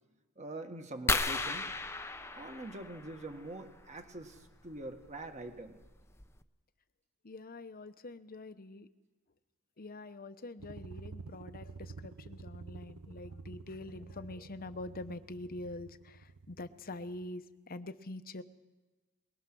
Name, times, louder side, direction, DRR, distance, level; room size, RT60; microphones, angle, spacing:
voice 1, 0.4-1.7 2.2-5.8, right 2 dB, 30° right, 6 dB, 1.7 m, -44 dB
sound 1, 1.1-3.5 5.1-5.2 5.8-5.9 6.2-6.4, left 3 dB, 10° left, 0.7 m, -34 dB
voice 2, 7.2-8.9 9.8-18.4, left 2 dB, 40° left, 10 dB, 0.9 m, -45 dB
sound 2, 10.6-17.3, right 4 dB, 75° right, 0.8 m, -49 dB
22.5 x 20.5 x 6.2 m, 1.2 s
head